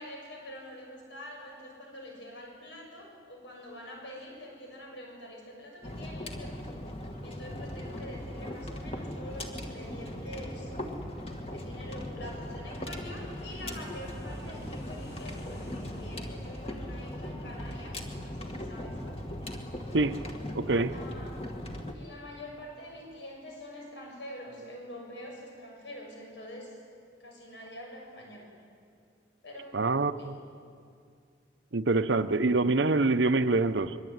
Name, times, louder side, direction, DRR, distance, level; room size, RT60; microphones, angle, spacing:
voice 1, 0.0-6.6 7.2-10.7 11.5-19.0 20.9-21.4 21.9-26.8 27.2-28.5 29.4-29.8 30.2-30.3, left 1 dB, 75° left, 6.9 m, -45 dB
sound 1, 5.8-21.9, left 1 dB, 30° left, 2.2 m, -39 dB
Aircraft, 9.5-18.4 18.7-18.8, equal, 60° left, 7.5 m, -56 dB
voice 2, 20.5-20.9 29.7-30.4 31.7-34.0, right 3 dB, 75° right, 0.8 m, -25 dB
24.0 x 23.0 x 9.5 m
head